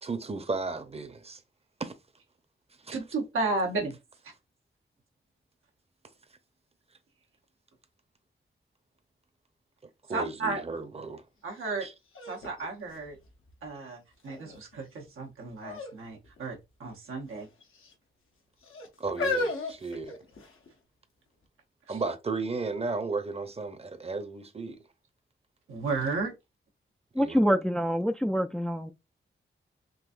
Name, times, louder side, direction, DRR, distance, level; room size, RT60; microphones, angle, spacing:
voice 1, 0.0-1.4 1.8-1.9 2.8-3.0 10.1-11.2 11.8-11.9 19.0-20.2 21.9-24.8 27.2-27.4, right 3 dB, 30° right, 0.7 m, -34 dB
voice 2, 2.9-4.0 10.1-10.6 11.4-11.9 12.3-13.2 13.6-17.5 21.9-22.0 25.7-26.3, right 3 dB, 90° right, 1.0 m, -33 dB
sound 1, 11.6-11.7 12.1-13.7 14.3-14.8 15.6-16.0 16.2-16.4 17.3-17.9 18.6-20.7 21.4-21.5, left 2 dB, 80° left, 0.9 m, -35 dB
voice 3, 27.1-28.9, equal, 5° left, 0.3 m, -26 dB
3.9 x 2.5 x 2.5 m
cardioid pair, 45°, 21 cm